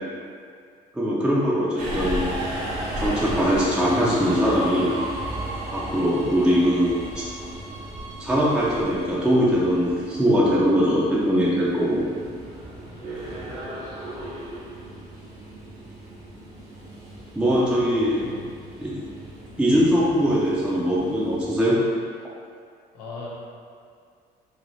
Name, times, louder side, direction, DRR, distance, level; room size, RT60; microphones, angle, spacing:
voice 1, 0.9-2.3 3.0-4.9 5.7-7.2 8.2-12.0 17.4-18.3 18.8-19.0 19.6-21.8, equal, 5° right, -7 dB, 0.6 m, -21 dB
Subway metro underground, 1.8-21.7, right 1 dB, 80° right, 1.1 m, -35 dB
voice 2, 12.9-13.4 18.2-18.4 22.9-23.3, left 4 dB, 90° left, -4 dB, 0.8 m, -41 dB
3.8 x 2.9 x 3.2 m, 2.2 s
cardioid pair, 110°, 17 cm